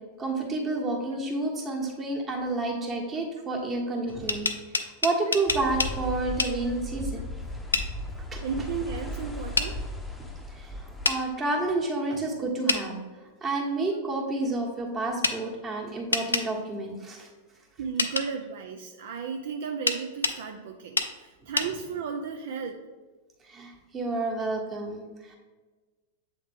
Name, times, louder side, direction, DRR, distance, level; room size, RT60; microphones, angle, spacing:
voice 1, 0.2-4.5 5.0-7.2 8.3-8.4 10.5-10.7 11.0-12.9 13.4-17.3 23.4-25.4, right 2 dB, 25° right, 0 dB, 1.4 m, -30 dB
sound 1, 4.1-5.9 6.4-6.5 7.7-7.9 9.6-9.7 11.0-11.2 12.7-12.8 15.2-15.4 16.1-16.5 18.0-18.3 19.9-20.4 21.0-21.1 21.6-21.7, left 3 dB, 90° left, 0.4 m, -26 dB
sound 2, 5.5-11.1, left 1 dB, 10° left, 0.7 m, -36 dB
voice 2, 8.4-9.8 17.8-22.8, right 6 dB, 65° right, 5 dB, 0.4 m, -34 dB
7.6 x 3.5 x 3.5 m, 1.3 s
hypercardioid pair, 100°, 0 cm